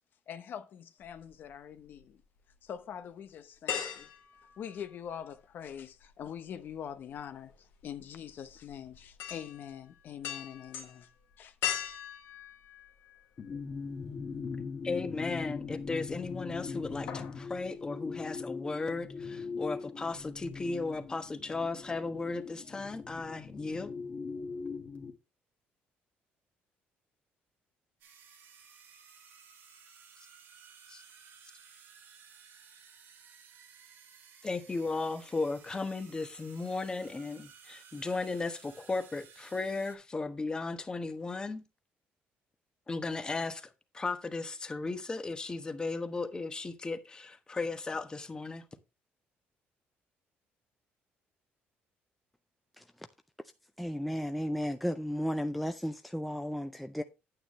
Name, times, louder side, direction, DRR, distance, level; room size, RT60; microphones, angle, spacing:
voice 1, 0.3-2.2 2.6-4.1 4.6-11.1 11.4-11.5, left 8 dB, 55° left, 0.8 m, -44 dB
sound 1, 1.0-2.0 2.5-2.6 3.7-5.4 5.7-13.6 14.0-14.1 15.5-16.1 16.4-16.6 16.9-17.4 17.7-17.8, left 10 dB, 85° left, 2.1 m, -40 dB
sound 2, 13.4-25.1, left 5 dB, 40° left, 1.5 m, -41 dB
voice 2, 14.8-23.9 30.9-31.0 34.4-41.6 42.9-48.6, left 3 dB, 20° left, 1.1 m, -36 dB
sound 3, 28.0-40.0, right 7 dB, 80° right, 2.4 m, -56 dB
voice 3, 53.8-57.0, equal, ahead, 0.5 m, -34 dB
9.1 x 8.9 x 3.1 m
cardioid pair, 130°, 4 cm